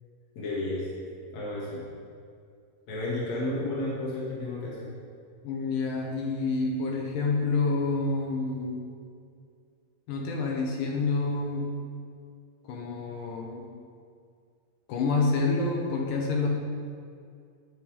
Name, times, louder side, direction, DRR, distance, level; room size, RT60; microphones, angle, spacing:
voice 1, 0.3-0.9 1.3-1.8 2.9-4.8, left 2 dB, 45° left, -7 dB, 3.1 m, -32 dB
voice 2, 5.4-8.8 10.1-11.7 12.7-13.7 14.9-16.5, left 3 dB, 70° left, 0 dB, 2.1 m, -28 dB
12.5 x 9.3 x 3.7 m, 2.3 s
omnidirectional pair, 5.0 m